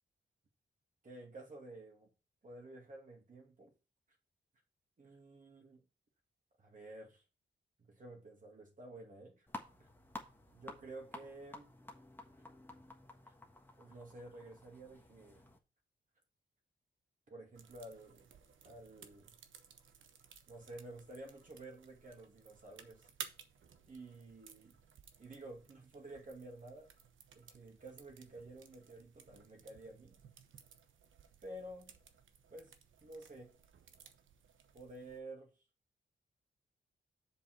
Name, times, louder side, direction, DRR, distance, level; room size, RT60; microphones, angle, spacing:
voice 1, 1.0-2.1 2.4-3.7 5.0-5.8 6.6-7.2 7.9-9.5 9.8-9.9 10.5-11.7 12.3-12.4 13.2-13.3 13.8-15.5 17.3-18.3 18.6-19.4 20.5-23.1 23.9-24.8 25.2-26.9 27.4-30.1 31.4-32.0 32.5-32.7 33.0-33.6 34.7-35.5, right 2 dB, 40° right, 2.2 m, -51 dB
sound 1, 9.5-15.6, left 2 dB, 10° left, 1.4 m, -52 dB
sound 2, 17.5-35.2, right 7 dB, 80° right, 1.0 m, -57 dB
7.2 x 5.5 x 4.3 m
wide cardioid pair, 130°, 20 cm